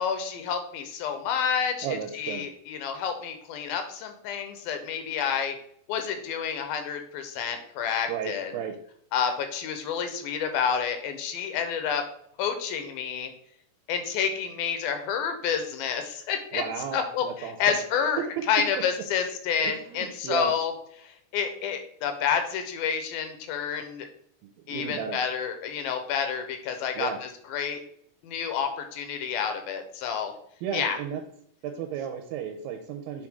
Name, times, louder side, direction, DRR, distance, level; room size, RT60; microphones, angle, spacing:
voice 1, 0.0-5.6 5.9-8.5 9.1-12.0 12.4-13.3 13.9-16.6 16.9-18.2 18.5-20.7 21.0-24.1 24.7-27.8 28.2-30.3 30.7-31.0, left 7 dB, 85° left, 7 dB, 2.7 m, -29 dB
voice 2, 1.8-2.5 8.1-8.8 16.5-17.8 18.0-18.2 19.6-20.5 24.4-25.2 27.0-27.2 30.6-31.2 31.6-33.3, right 8 dB, 80° right, 5 dB, 2.4 m, -34 dB
7.6 x 4.3 x 3.6 m, 0.67 s
omnidirectional pair, 4.2 m